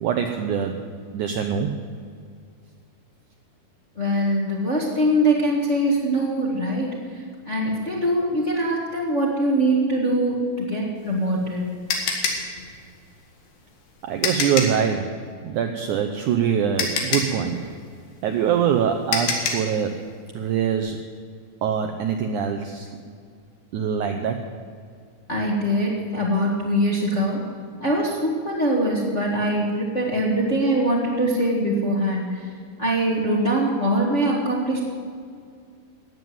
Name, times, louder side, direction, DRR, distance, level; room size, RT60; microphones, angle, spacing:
voice 1, 0.0-0.8 1.1-1.7 14.0-15.2 15.5-17.6 18.2-20.0 20.3-21.0 21.6-22.9 23.7-24.4, right 8 dB, 75° right, 5 dB, 1.8 m, -24 dB
voice 2, 3.9-11.7 25.3-27.4 27.8-32.5 32.8-34.8, right 1 dB, 30° left, -3 dB, 1.3 m, -23 dB
sound 1, 11.0-14.9 16.3-16.4 16.8-19.7, left 4 dB, 85° left, 4.0 m, -26 dB
15.0 x 9.3 x 9.4 m, 2.2 s
omnidirectional pair, 4.5 m